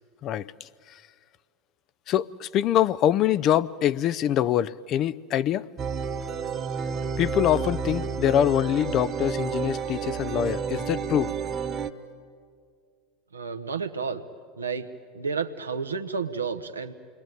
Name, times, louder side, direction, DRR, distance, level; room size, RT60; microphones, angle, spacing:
voice 1, 2.1-5.7 7.2-11.3, left 11 dB, 45° left, 0.6 m, -24 dB
sound 1, 5.8-11.9, right 6 dB, 35° right, 1.4 m, -30 dB
voice 2, 13.3-14.2 14.6-14.9 15.1-16.9, right 5 dB, 90° right, 1.1 m, -31 dB
28.5 x 22.0 x 9.3 m
hypercardioid pair, 80°, 0 cm